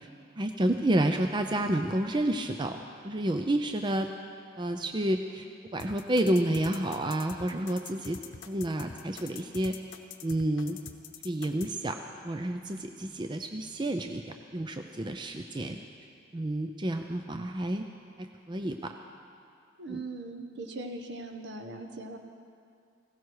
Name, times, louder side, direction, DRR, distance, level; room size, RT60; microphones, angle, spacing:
voice 1, 0.4-4.1 4.6-5.5 5.7-8.2 8.5-9.7 10.2-10.8 11.2-12.0 12.2-15.8 16.3-17.8 18.2-18.9 19.9-20.0, right 1 dB, 25° right, 5 dB, 0.5 m, -30 dB
sound 1, 5.8-11.7, left 6 dB, 85° left, 0.9 m, -44 dB
voice 2, 19.8-22.2, right 2 dB, 65° right, 5 dB, 1.3 m, -40 dB
18.5 x 16.5 x 4.8 m, 2.4 s
head